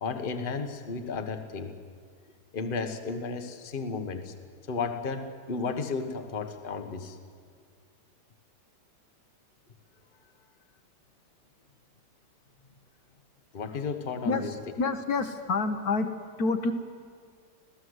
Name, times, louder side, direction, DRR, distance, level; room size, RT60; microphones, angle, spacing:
voice 1, 0.0-1.7 2.5-4.3 4.7-7.2 13.5-14.5, left 4 dB, 35° left, 6 dB, 1.3 m, -33 dB
voice 2, 14.2-16.7, left 3 dB, 60° left, 6 dB, 1.5 m, -28 dB
26.0 x 16.5 x 8.0 m, 2.1 s
omnidirectional pair, 1.9 m